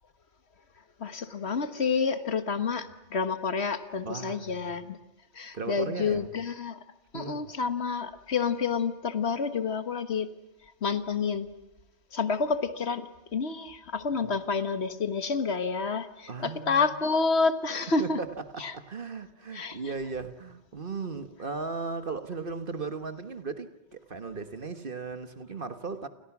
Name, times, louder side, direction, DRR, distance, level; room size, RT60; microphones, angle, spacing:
voice 1, 1.0-5.0 5.3-6.8 7.1-10.3 10.8-11.5 12.1-18.2 18.6-18.7 19.5-19.8, left 5 dB, 70° left, 1.7 m, -29 dB
voice 2, 4.0-4.7 5.5-6.3 7.1-7.5 14.2-14.4 16.3-17.0 18.0-26.1, right 4 dB, 50° right, 1.6 m, -37 dB
29.0 x 28.5 x 6.1 m
omnidirectional pair, 1.1 m